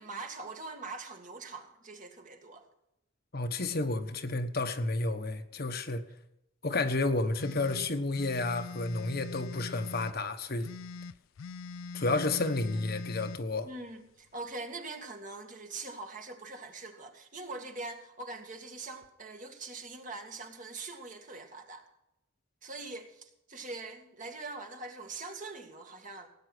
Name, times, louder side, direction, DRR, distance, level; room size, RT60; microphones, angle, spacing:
voice 1, 0.0-2.6 13.7-21.8 22.6-26.3, right 3 dB, 40° right, 2.1 m, -43 dB
voice 2, 3.3-6.0 6.6-10.7 11.9-13.7, left 2 dB, 50° left, 1.1 m, -31 dB
sound 1, 7.4-10.2 10.6-13.4, left 4 dB, 75° left, 0.4 m, -42 dB
18.0 x 9.0 x 6.1 m
head